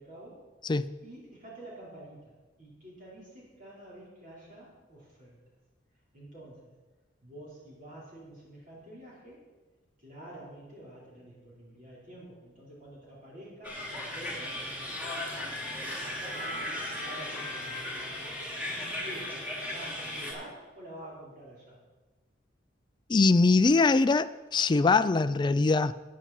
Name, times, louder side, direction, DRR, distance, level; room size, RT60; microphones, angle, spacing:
voice 1, 0.0-0.5 1.0-5.4 6.1-6.7 7.2-9.4 10.0-14.6 15.3-17.9 18.7-21.8, right 1 dB, 45° right, -6 dB, 4.7 m, -48 dB
sound 1, 13.6-20.3, left 1 dB, 10° right, 2.9 m, -36 dB
voice 2, 23.1-25.9, left 3 dB, 25° left, 13 dB, 0.3 m, -23 dB
14.5 x 9.5 x 4.5 m, 1.2 s
head